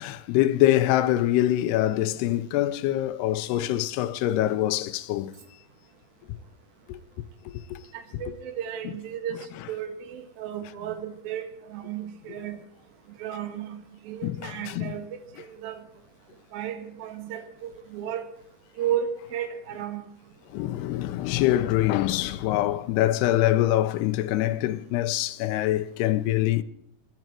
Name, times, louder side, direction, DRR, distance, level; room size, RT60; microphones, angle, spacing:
voice 1, 0.0-5.3 6.9-7.0 7.5-7.8 14.2-14.9 20.5-26.6, left 14 dB, 85° left, 2.8 m, -24 dB
voice 2, 7.9-9.4 9.7-11.4 11.7-12.6 13.2-15.1 15.4-15.8 16.5-18.3 18.8-20.0, right 9 dB, 70° right, 3.4 m, -33 dB
26.5 x 11.0 x 4.6 m
omnidirectional pair, 4.6 m